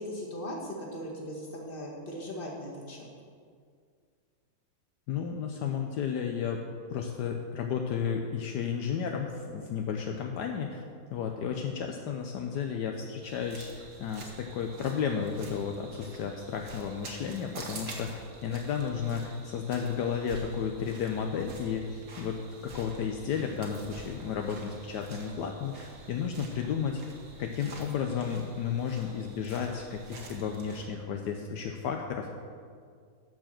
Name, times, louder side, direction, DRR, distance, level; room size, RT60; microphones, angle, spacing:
voice 1, 0.0-3.1, equal, 30° left, -3 dB, 1.9 m, -39 dB
voice 2, 5.1-6.6 6.9-10.8 11.1-22.4 22.6-27.0 27.4-32.4, left 7 dB, 75° left, 3 dB, 1.3 m, -33 dB
sound 1, 13.2-30.9, right 3 dB, 55° right, 1.8 m, -48 dB
12.0 x 4.8 x 7.4 m, 2.1 s
omnidirectional pair, 1.9 m